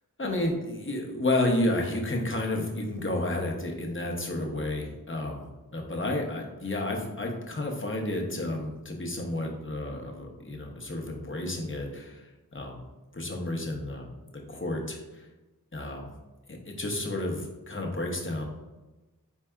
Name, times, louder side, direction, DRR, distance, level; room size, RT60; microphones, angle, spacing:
voice 1, 0.2-5.4 5.7-12.9 13.1-15.3 15.7-16.1 16.6-18.4, left 1 dB, 35° left, 0 dB, 0.8 m, -31 dB
4.5 x 4.1 x 2.3 m, 1.1 s
wide cardioid pair, 45°, 36 cm